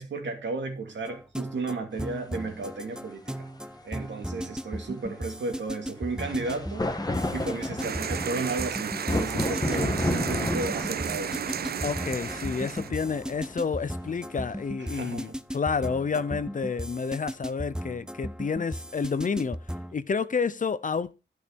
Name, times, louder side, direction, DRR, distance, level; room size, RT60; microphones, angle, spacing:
voice 1, 0.0-3.2 3.8-6.9 7.3-11.4 12.8-13.0 14.8-15.4, right 3 dB, 75° right, 2.7 m, -33 dB
sound 1, 1.1-20.0, equal, 5° right, 0.6 m, -37 dB
sound 2, 2.3-2.4 6.2-14.6, left 2 dB, 20° left, 1.5 m, -33 dB
sound 3, 7.8-12.9, right 8 dB, 55° right, 0.5 m, -33 dB
voice 2, 11.8-19.6 19.9-21.1, left 5 dB, 45° left, 0.7 m, -29 dB
11.5 x 6.5 x 5.3 m
wide cardioid pair, 105°, 19 cm